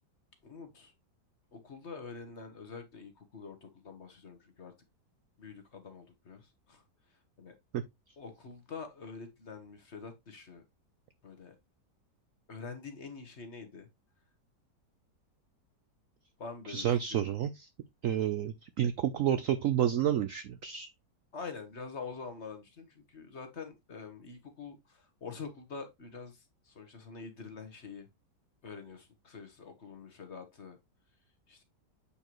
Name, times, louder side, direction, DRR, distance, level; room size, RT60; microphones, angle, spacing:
voice 1, 0.4-0.9 1.5-4.7 5.4-6.8 7.4-7.5 8.2-10.6 11.2-11.5 12.5-13.9 16.4-17.2 21.3-26.4 26.7-28.1 28.6-30.8 31.5-31.6, left 5 dB, 45° left, 1.3 m, -46 dB
voice 2, 16.7-17.7 18.0-20.9, right 10 dB, 75° right, 0.7 m, -30 dB
8.4 x 4.5 x 3.0 m
omnidirectional pair, 1.9 m